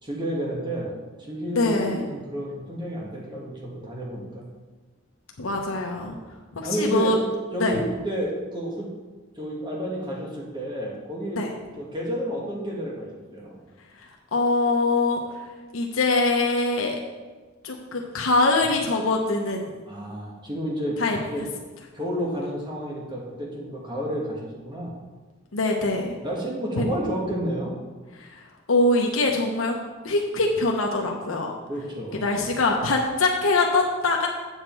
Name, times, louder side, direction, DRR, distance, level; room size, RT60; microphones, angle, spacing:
voice 1, 0.0-0.9 1.2-4.4 6.6-7.1 7.5-8.9 9.4-11.4 11.8-13.6 19.8-21.0 21.2-21.5 21.9-24.9 26.2-27.7 31.7-32.6, equal, 25° right, -3 dB, 1.9 m, -30 dB
voice 2, 1.5-2.0 5.4-6.2 6.6-7.2 7.6-7.8 11.4-11.5 14.3-15.2 15.7-17.0 17.6-19.8 21.0-21.2 25.5-26.1 26.8-26.9 28.7-29.8 30.0-31.5 32.2-34.3, left 2 dB, 90° left, 1 dB, 0.9 m, -23 dB
7.9 x 7.4 x 4.6 m, 1.3 s
head